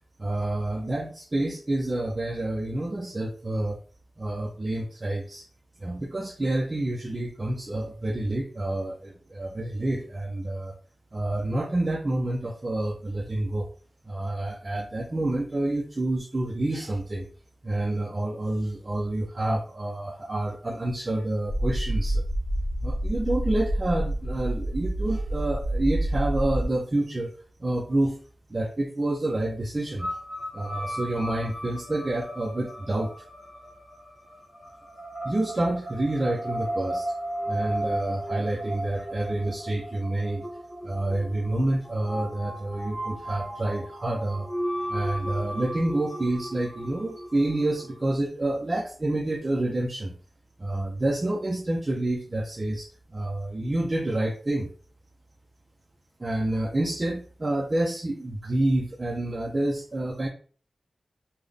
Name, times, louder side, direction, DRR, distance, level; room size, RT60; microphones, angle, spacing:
voice 1, 0.2-3.8 4.2-5.5 5.8-10.7 11.1-13.7 14.1-17.3 17.6-22.2 22.8-27.3 27.6-28.2 28.5-30.2 30.5-33.1 35.2-37.1 37.5-40.5 40.8-44.5 44.9-50.1 50.6-54.7 56.2-60.3, right 1 dB, 30° right, 3 dB, 0.3 m, -28 dB
sound 1, 21.4-26.7, right 1 dB, 65° left, 0.6 m, -28 dB
sound 2, 30.0-48.1, equal, 20° left, 1.3 m, -35 dB
3.6 x 2.0 x 3.3 m, 0.44 s
wide cardioid pair, 105°, 0 cm